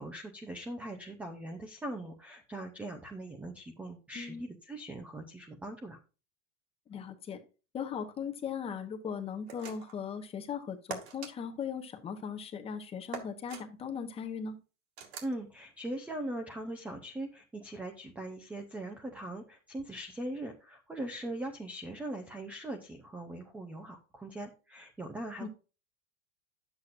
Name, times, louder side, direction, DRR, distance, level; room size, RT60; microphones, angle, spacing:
voice 1, 0.0-6.0 15.2-25.5, right 1 dB, 5° right, 4 dB, 0.5 m, -41 dB
voice 2, 4.1-4.5 6.9-7.4 7.7-14.6 25.4-25.5, left 7 dB, 15° left, 6 dB, 0.9 m, -38 dB
sound 1, 9.5-10.0 10.9-11.3 13.1-13.6 15.0-15.4, right 7 dB, 60° right, 2.1 m, -42 dB
10.0 x 7.7 x 2.5 m, 0.32 s
supercardioid pair, 155°, 36 cm